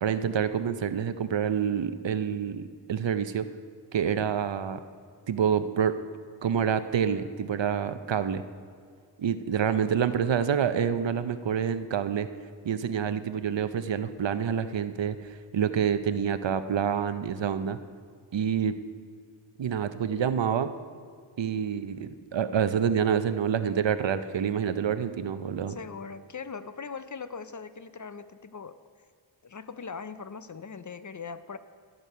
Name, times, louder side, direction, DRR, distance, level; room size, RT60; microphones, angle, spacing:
voice 1, 0.0-3.4 3.9-4.8 5.3-5.9 6.4-8.4 9.2-12.3 12.6-17.8 18.3-18.8 19.6-20.7 21.4-25.8, right 8 dB, 65° right, 11 dB, 0.6 m, -27 dB
voice 2, 25.7-28.8 29.4-31.6, left 5 dB, 40° left, 12 dB, 0.5 m, -40 dB
15.0 x 6.7 x 5.6 m, 2.1 s
wide cardioid pair, 55°, 48 cm